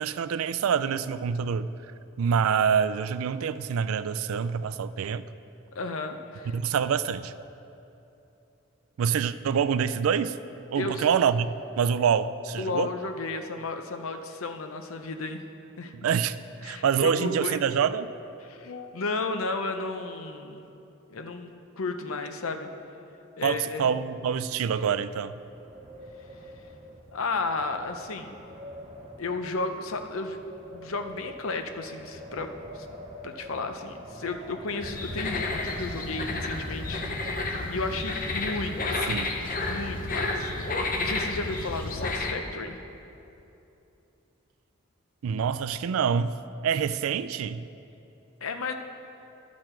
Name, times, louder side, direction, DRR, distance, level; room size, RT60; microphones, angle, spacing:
voice 1, 0.0-1.7 2.2-5.2 6.5-7.3 9.0-10.4 10.7-12.9 15.9-16.4 16.6-18.1 23.4-25.4 39.1-39.3 45.2-47.6, right 7 dB, 90° right, 14 dB, 0.3 m, -26 dB
voice 2, 5.7-6.5 10.8-11.0 12.6-15.5 15.8-15.9 16.6-17.6 18.4-20.6 21.1-21.5 21.8-22.7 23.4-23.9 27.1-28.3 29.2-30.4 30.7-32.9 33.2-39.2 39.6-42.8 48.4-48.7, left 3 dB, 85° left, 6 dB, 0.7 m, -33 dB
Wind, 25.3-37.9, equal, 30° right, 0.8 m, -46 dB
sound 1, 34.8-42.3, left 2 dB, 40° left, 0.7 m, -31 dB
12.5 x 6.2 x 4.4 m, 2.9 s
head